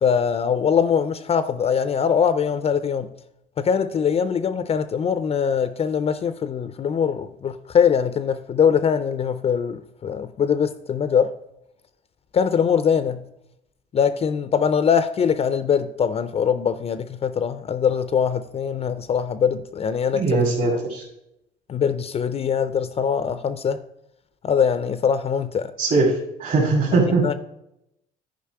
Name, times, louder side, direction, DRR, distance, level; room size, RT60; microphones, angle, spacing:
voice 1, 0.0-3.1 3.6-11.3 12.3-13.2 13.9-20.4 21.7-23.8 24.4-25.7 26.9-27.3, left 7 dB, 35° left, 0.5 m, -22 dB
voice 2, 20.1-21.0 25.8-26.1 26.4-27.2, right 3 dB, 50° right, 2.5 m, -20 dB
10.5 x 5.0 x 4.7 m
cardioid pair, 110°, 17 cm